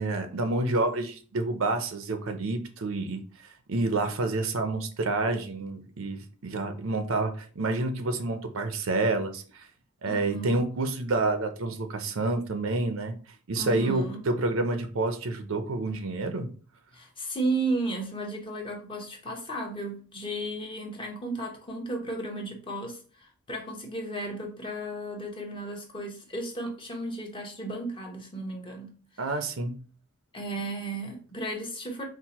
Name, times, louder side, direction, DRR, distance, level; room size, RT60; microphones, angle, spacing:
voice 1, 0.0-3.2 3.7-9.7 10.0-13.2 13.5-16.5 29.2-29.8, right 2 dB, 65° right, 7 dB, 0.6 m, -28 dB
voice 2, 10.1-10.6 13.6-14.2 16.9-28.9 30.3-32.1, right 2 dB, 25° left, 1 dB, 0.9 m, -34 dB
4.5 x 2.2 x 4.1 m, 0.40 s
head